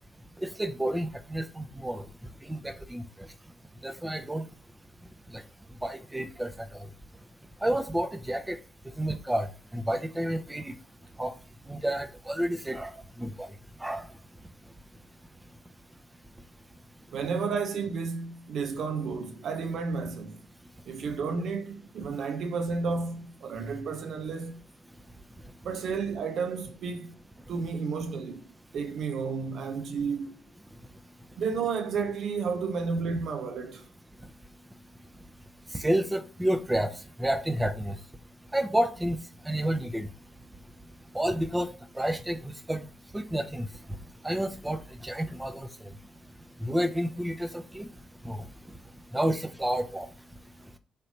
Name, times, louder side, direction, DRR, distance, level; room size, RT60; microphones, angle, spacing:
voice 1, 0.4-2.0 2.5-3.0 3.8-4.4 5.3-5.4 5.8-6.9 7.6-8.6 9.0-9.5 9.7-10.7 11.2-11.3 11.7-12.9 13.2-13.5 13.8-14.0 35.7-36.9 37.2-37.9 38.5-39.2 39.5-40.1 41.1-41.7 42.0-42.9 43.1-43.7 44.2-45.7 46.6-47.9 48.2-48.4 49.1-50.1, right 1 dB, 10° right, 0.5 m, -30 dB
voice 2, 17.1-20.4 20.9-24.7 25.6-27.2 27.5-28.5 28.7-30.5 31.4-33.8, right 5 dB, 60° right, 0.4 m, -32 dB
3.3 x 2.8 x 2.7 m
hypercardioid pair, 40°, 0 cm